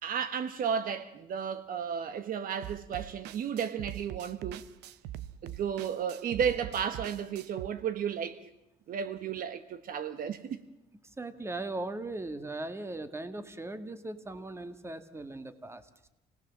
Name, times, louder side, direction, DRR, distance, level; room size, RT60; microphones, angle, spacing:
voice 1, 0.0-4.6 5.4-8.4 8.9-10.6, right 7 dB, 55° right, 1.3 m, -33 dB
sound 1, 2.6-7.7, right 12 dB, 90° right, 0.9 m, -43 dB
voice 2, 11.0-16.1, right 2 dB, 15° right, 1.7 m, -39 dB
28.0 x 18.5 x 7.4 m
cardioid pair, 110°, 17 cm